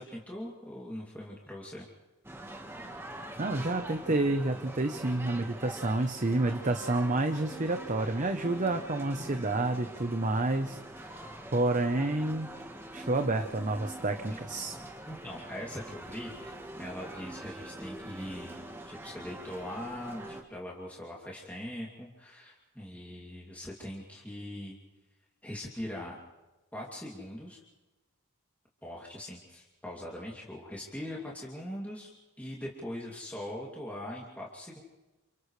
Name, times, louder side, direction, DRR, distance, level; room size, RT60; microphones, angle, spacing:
voice 1, 0.0-1.9 15.1-24.8 25.4-26.1 26.7-27.6 28.8-32.1 32.4-34.8, left 1 dB, 5° left, -4 dB, 2.7 m, -41 dB
sound 1, 2.2-20.4, right 1 dB, 10° right, 1.6 m, -44 dB
voice 2, 3.4-12.5 12.9-14.7, right 2 dB, 35° right, 6 dB, 0.9 m, -29 dB
29.0 x 29.0 x 3.3 m, 1.1 s
head